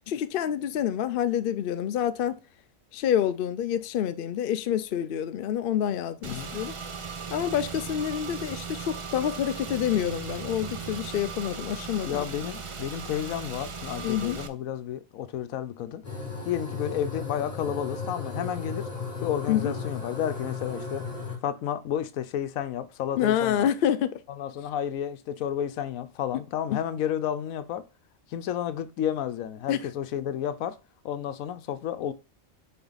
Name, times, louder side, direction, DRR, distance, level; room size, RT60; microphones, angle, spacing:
voice 1, 0.1-2.4 2.9-6.7 7.3-12.2 14.0-14.4 19.5-19.7 23.2-24.2 26.7-26.8 29.7-29.8, left 10 dB, 65° left, 0.5 m, -27 dB
Car / Engine, 6.2-14.5, right 5 dB, 40° right, 0.4 m, -37 dB
voice 2, 12.0-16.0 16.4-18.9 19.2-21.0 21.4-23.7 24.3-27.9 28.3-30.8 31.0-32.1, left 10 dB, 85° left, 1.1 m, -31 dB
sound 1, 16.0-21.4, left 4 dB, 30° left, 1.7 m, -35 dB
7.0 x 4.3 x 3.9 m
omnidirectional pair, 1.4 m